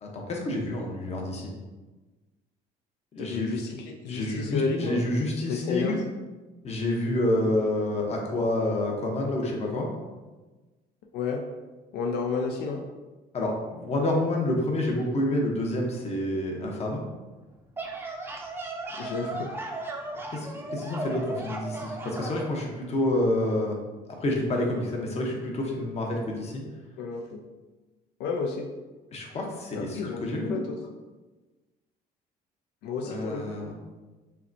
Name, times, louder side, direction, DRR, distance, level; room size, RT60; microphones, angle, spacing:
voice 1, 0.0-1.5 3.1-3.5 4.1-6.0 6.6-9.9 13.3-17.0 20.3-23.8 24.2-26.6 29.1-30.6 33.0-33.8, left 1 dB, 40° left, 0 dB, 0.8 m, -28 dB
voice 2, 3.2-5.0 5.5-6.0 11.1-11.4 11.9-12.8 19.0-19.7 27.0-27.4 28.2-28.7 29.7-30.2 30.5-30.8 32.8-33.6, left 4 dB, 85° left, 2 dB, 0.4 m, -31 dB
sound 1, 17.5-22.5, right 2 dB, 15° right, 0.5 m, -36 dB
5.6 x 2.1 x 2.6 m, 1.2 s
cardioid pair, 110°, 17 cm